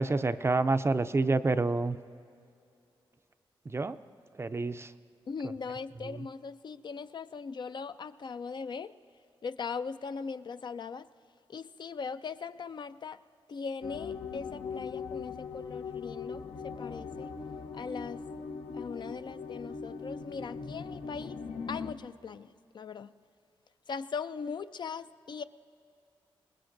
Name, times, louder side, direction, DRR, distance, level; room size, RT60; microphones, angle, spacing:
voice 1, 0.0-2.0 3.7-4.0 4.4-4.9 6.1-6.3, right 3 dB, 25° right, 12 dB, 0.4 m, -28 dB
voice 2, 5.3-8.9 9.4-11.1 11.5-13.2 13.5-17.3 17.7-18.2 18.7-21.4 21.7-22.5 22.7-23.1 23.9-25.4, left 5 dB, 50° left, 12 dB, 0.3 m, -39 dB
sound 1, 13.8-21.9, left 5 dB, 75° left, 0.8 m, -40 dB
21.5 x 19.5 x 2.6 m, 2.4 s
cardioid pair, 75°, 10 cm